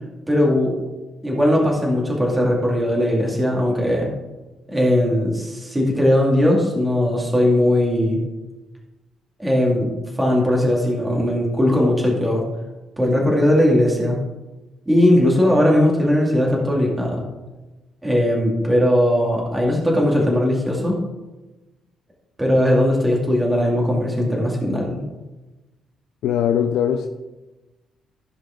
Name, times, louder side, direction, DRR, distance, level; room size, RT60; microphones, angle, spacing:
voice 1, 0.3-0.8 1.2-4.1 4.7-8.2 9.4-9.9 10.2-12.4 13.0-14.2 14.9-17.2 18.0-20.9 22.4-25.0, left 1 dB, 10° right, -2 dB, 2.3 m, -19 dB
voice 2, 26.2-27.1, left 9 dB, 80° left, 5 dB, 0.5 m, -20 dB
15.0 x 5.1 x 3.8 m, 1.1 s
cardioid pair, 90°, 0 cm